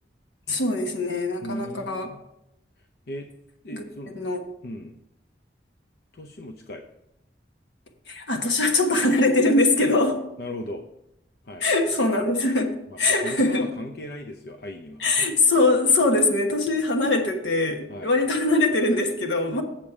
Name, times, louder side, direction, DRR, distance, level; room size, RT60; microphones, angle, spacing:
voice 1, 0.5-2.1 3.7-4.4 8.1-10.2 11.6-13.7 15.0-19.6, left 2 dB, 80° left, 3 dB, 1.3 m, -22 dB
voice 2, 1.4-2.2 3.1-3.3 3.6-4.3 4.6-5.0 6.1-6.9 10.4-10.9 11.4-11.7 12.9-15.0 17.9-18.1, left 1 dB, 55° left, 3 dB, 0.6 m, -37 dB
7.4 x 7.1 x 4.8 m, 0.84 s
head